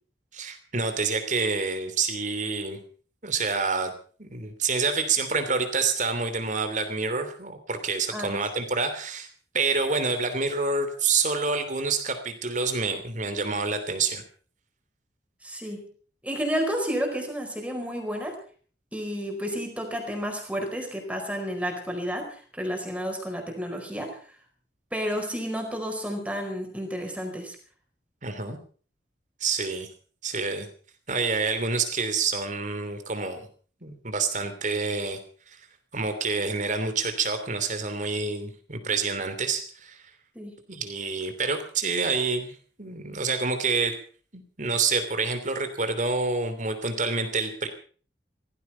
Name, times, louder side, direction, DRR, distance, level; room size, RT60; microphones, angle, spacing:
voice 1, 0.3-2.8 3.2-3.9 4.2-9.3 9.5-14.2 28.2-28.6 29.4-29.9 30.2-30.7 31.1-33.5 33.8-35.2 35.5-35.6 35.9-40.0 40.7-44.0 44.3-47.7, right 4 dB, 45° right, 9 dB, 3.0 m, -27 dB
voice 2, 15.4-15.9 16.2-18.4 18.9-24.2 24.9-27.6 40.3-40.5, equal, 10° right, 3 dB, 4.6 m, -31 dB
17.0 x 15.0 x 5.7 m, 0.42 s
head